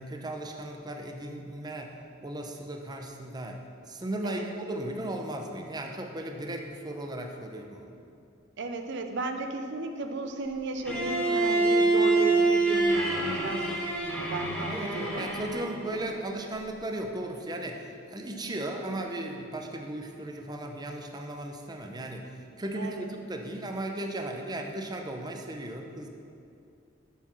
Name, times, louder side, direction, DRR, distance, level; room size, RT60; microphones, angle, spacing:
voice 1, 0.0-7.9 14.7-26.1, right 1 dB, 20° right, 3 dB, 0.7 m, -36 dB
voice 2, 8.6-15.3 15.8-16.1 18.4-18.5 22.7-23.1, right 3 dB, 65° right, 6 dB, 0.6 m, -35 dB
Bowed string instrument, 10.8-15.8, right 3 dB, 5° left, 1.9 m, -26 dB
8.3 x 6.1 x 6.1 m, 2.6 s
head